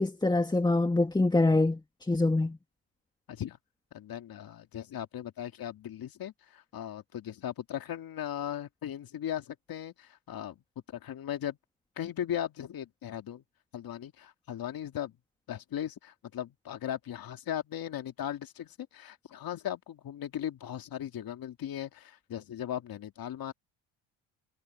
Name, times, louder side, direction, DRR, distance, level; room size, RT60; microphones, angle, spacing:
voice 1, 0.0-2.6, left 2 dB, 10° left, 1.7 m, -25 dB
voice 2, 3.9-10.5 10.9-11.6 12.0-13.4 13.7-15.1 15.5-23.5, left 10 dB, 50° left, 2.3 m, -38 dB
supercardioid pair, 80°, 44 cm